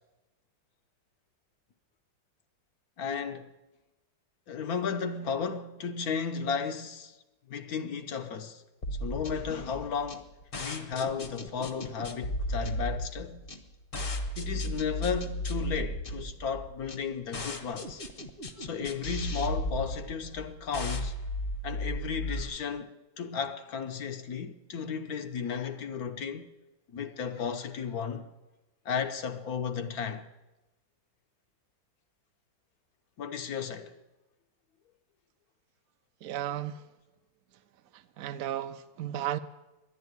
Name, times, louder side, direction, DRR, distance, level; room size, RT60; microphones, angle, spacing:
voice 1, 3.0-3.5 4.5-7.2 7.5-8.6 9.0-10.3 10.6-13.4 14.4-18.0 18.6-21.1 21.6-26.4 26.9-28.2 28.8-30.2 33.2-33.9, left 6 dB, 60° left, 1.2 m, -34 dB
sound 1, 8.8-22.4, equal, 35° left, 1.0 m, -35 dB
voice 2, 36.2-36.8 37.9-39.4, right 12 dB, 65° right, 0.9 m, -34 dB
11.0 x 10.5 x 9.4 m
omnidirectional pair, 2.0 m